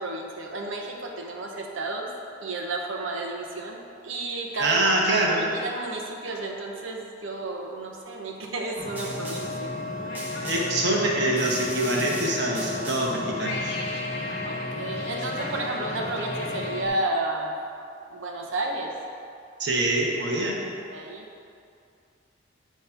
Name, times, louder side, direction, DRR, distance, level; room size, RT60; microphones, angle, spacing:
voice 1, 0.0-2.1 2.4-4.8 5.2-9.7 14.4-17.5 18.1-19.0 20.9-21.3, right 2 dB, 80° right, 1 dB, 0.9 m, -32 dB
voice 2, 4.6-5.4 10.4-13.8 19.6-20.6, right 1 dB, 60° right, -1 dB, 1.0 m, -25 dB
sound 1, 8.8-16.9, left 2 dB, 55° left, 1.0 m, -33 dB
Snare drum, 9.0-9.7 10.2-10.9 11.4-13.3, right 1 dB, 10° right, 0.7 m, -39 dB
8.9 x 3.1 x 5.7 m, 2.4 s
head